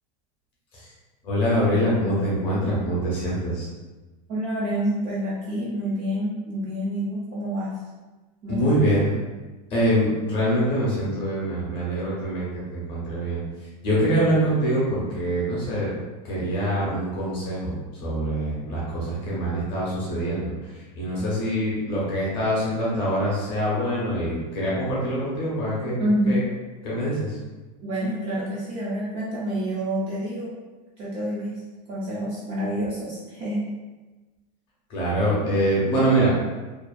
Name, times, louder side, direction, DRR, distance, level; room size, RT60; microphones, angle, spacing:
voice 1, 1.2-3.7 8.5-9.2 9.7-13.4 13.8-15.9 16.2-26.4 26.8-27.4 34.9-36.3, equal, 25° left, -6 dB, 0.6 m, -24 dB
voice 2, 4.3-7.8 8.4-8.8 26.0-26.4 27.8-30.5 31.0-31.6 31.9-33.6, equal, 25° right, -7 dB, 0.3 m, -27 dB
2.5 x 2.2 x 2.3 m, 1.2 s
supercardioid pair, 180°, 21 cm